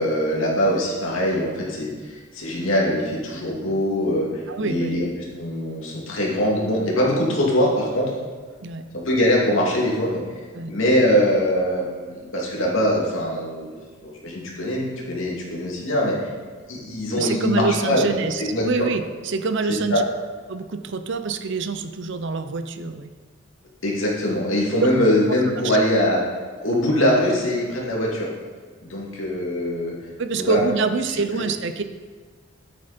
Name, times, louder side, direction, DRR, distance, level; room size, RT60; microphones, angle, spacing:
voice 1, 0.0-1.9 2.3-5.0 5.4-8.1 9.0-10.2 10.7-13.7 14.0-16.1 16.7-18.8 19.7-20.0 23.8-26.2 26.6-28.3 28.8-29.9 30.3-30.6, equal, 70° left, -3 dB, 2.7 m, -22 dB
voice 2, 4.5-5.0 8.6-8.8 10.5-10.7 17.2-20.0 20.5-23.1 24.7-24.9 25.6-25.8 30.2-31.8, right 4 dB, 60° right, 9 dB, 0.7 m, -26 dB
10.0 x 8.8 x 4.4 m, 1.5 s
head